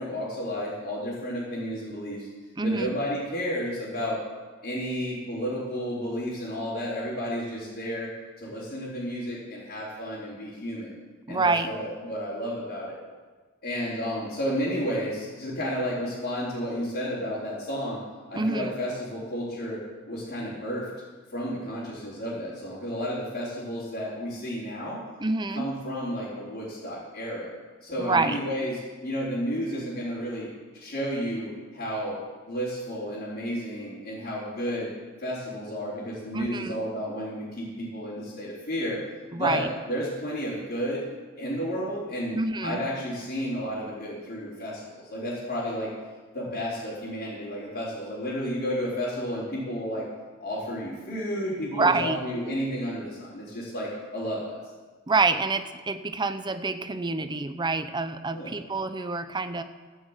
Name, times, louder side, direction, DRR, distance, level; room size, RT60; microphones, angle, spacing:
voice 1, 0.0-2.3 2.6-4.2 4.6-8.1 8.4-10.9 11.3-13.0 13.6-18.0 18.3-19.8 20.1-20.9 21.3-25.0 25.5-27.5 27.8-32.2 32.5-34.9 35.2-39.0 39.3-41.0 41.4-45.9 46.3-50.1 50.4-54.6 58.3-58.6, equal, 45° left, -10 dB, 4.0 m, -32 dB
voice 2, 2.6-3.0 11.3-11.7 18.3-18.7 25.2-25.7 28.0-28.4 36.3-36.8 39.3-39.7 42.3-42.8 51.7-52.2 55.1-59.6, right 3 dB, 20° right, 10 dB, 0.6 m, -27 dB
14.0 x 6.3 x 8.1 m, 1.3 s
head